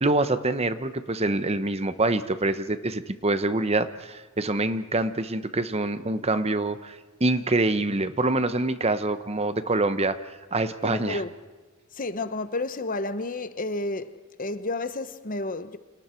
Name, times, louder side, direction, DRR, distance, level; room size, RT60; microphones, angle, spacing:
voice 1, 0.0-10.2 10.5-11.2, right 2 dB, 30° right, 1.0 m, -25 dB
voice 2, 10.8-11.3 11.9-14.1 14.4-15.8, left 2 dB, 40° left, 1.1 m, -31 dB
29.5 x 28.0 x 4.6 m
head